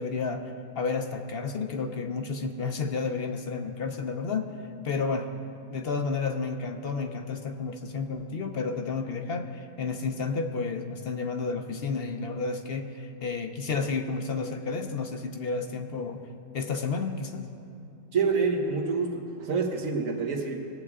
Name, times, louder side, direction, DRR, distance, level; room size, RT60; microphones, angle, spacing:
voice 1, 0.0-4.5 4.8-5.3 5.7-16.2 16.5-17.5, left 4 dB, 55° left, 6 dB, 0.8 m, -31 dB
voice 2, 18.1-20.6, right 4 dB, 90° right, 0 dB, 1.7 m, -27 dB
20.5 x 8.2 x 3.7 m, 2.7 s
omnidirectional pair, 1.3 m